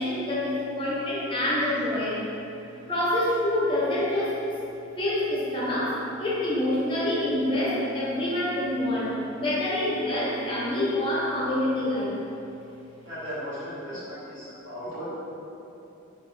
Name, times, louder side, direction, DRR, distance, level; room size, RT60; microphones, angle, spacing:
voice 1, 0.0-2.2 2.9-4.5 5.0-12.2, left 1 dB, 25° left, -7 dB, 0.5 m, -26 dB
voice 2, 13.0-15.2, equal, 75° right, -12 dB, 1.3 m, -36 dB
2.9 x 2.3 x 3.1 m, 2.9 s
head